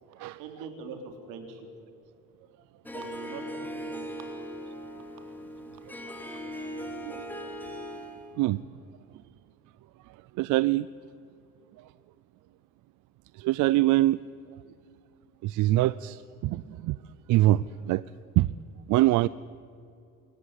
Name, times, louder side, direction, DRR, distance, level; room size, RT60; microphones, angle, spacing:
voice 1, 0.4-1.7 2.9-4.3, right 5 dB, 85° right, 5 dB, 3.7 m, -42 dB
Harp, 2.9-8.3, equal, 5° left, 3.2 m, -39 dB
voice 2, 10.4-10.9 13.4-14.2 15.4-17.0 17.3-18.0 18.4-18.5 18.9-19.3, right 16 dB, 70° right, 18 dB, 0.5 m, -24 dB
25.5 x 14.5 x 9.9 m, 2.6 s
cardioid pair, 135°, 32 cm